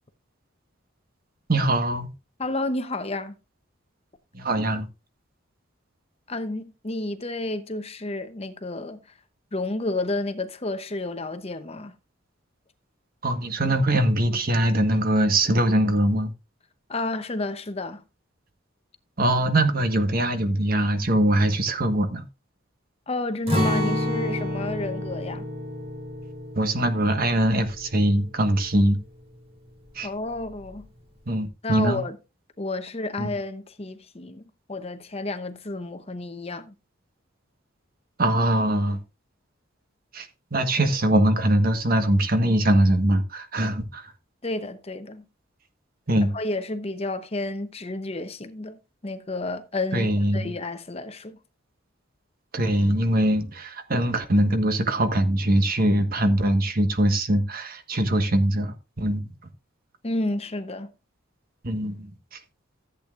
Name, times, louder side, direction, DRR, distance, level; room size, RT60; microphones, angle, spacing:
voice 1, 1.5-2.1 4.3-4.9 13.2-16.3 19.2-22.2 26.5-29.0 29.9-30.1 31.3-32.0 33.2-33.3 38.2-39.0 40.1-44.1 46.1-46.3 49.9-50.5 52.5-59.3 61.6-62.4, right 1 dB, 50° right, 1.3 m, -22 dB
voice 2, 2.4-3.3 6.3-9.0 9.5-11.9 16.9-18.0 23.1-25.5 30.0-30.9 31.6-32.2 32.6-36.7 44.4-45.3 46.3-50.1 50.3-51.4 60.0-60.9, left 2 dB, 30° left, 0.8 m, -31 dB
Acoustic guitar, 23.5-29.4 29.7-29.9 30.3-30.8, left 1 dB, 30° right, 3.9 m, -30 dB
14.5 x 8.3 x 2.5 m
head